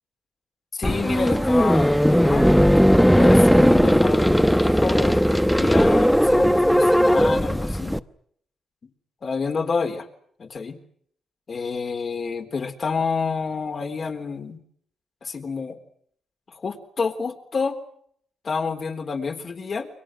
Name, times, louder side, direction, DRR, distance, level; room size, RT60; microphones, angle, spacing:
voice 1, 0.7-2.5 3.1-7.9 9.2-10.1 10.4-10.8 11.5-14.6 15.2-15.8 16.6-17.8 18.4-19.9, left 5 dB, 50° left, 6 dB, 3.8 m, -28 dB
sound 1, 0.8-8.0, equal, ahead, 1.0 m, -17 dB
29.5 x 23.5 x 6.4 m, 0.65 s
cardioid pair, 80°, 0 cm